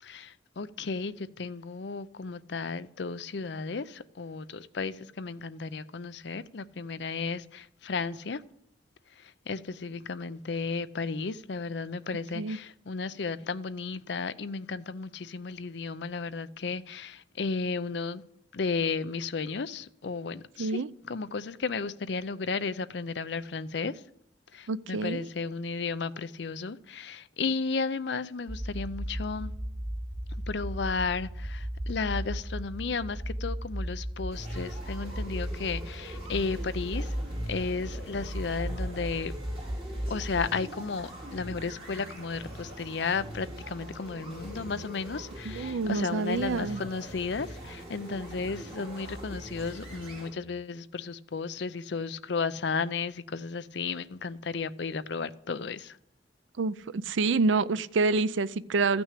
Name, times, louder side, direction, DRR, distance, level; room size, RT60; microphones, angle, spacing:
voice 1, 0.0-8.4 9.5-18.2 18.5-20.8 21.1-23.9 24.5-29.5 30.5-37.2 37.5-39.3 40.1-56.0, left 4 dB, 65° left, 0.6 m, -34 dB
voice 2, 20.6-20.9 24.7-25.3 45.4-46.8 56.6-59.0, right 3 dB, 85° right, 0.5 m, -27 dB
sound 1, 28.5-40.5, equal, 10° right, 0.4 m, -36 dB
sound 2, 34.3-50.3, right 1 dB, 30° right, 5.1 m, -43 dB
14.5 x 6.1 x 8.3 m
head